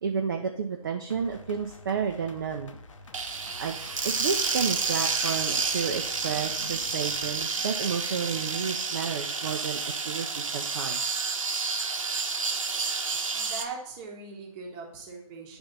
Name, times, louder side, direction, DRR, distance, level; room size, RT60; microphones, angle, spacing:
voice 1, 0.0-2.8 3.6-3.8 4.0-11.0, right 6 dB, 35° right, 3 dB, 0.5 m, -31 dB
sound 1, 1.1-7.4, left 2 dB, 60° left, 0.8 m, -48 dB
sound 2, 3.1-13.6, right 4 dB, 60° right, 0.9 m, -30 dB
voice 2, 13.3-15.6, right 4 dB, 15° right, 1 dB, 0.9 m, -40 dB
9.5 x 3.5 x 3.9 m, 0.78 s
figure-of-eight pair, 150°, 19 cm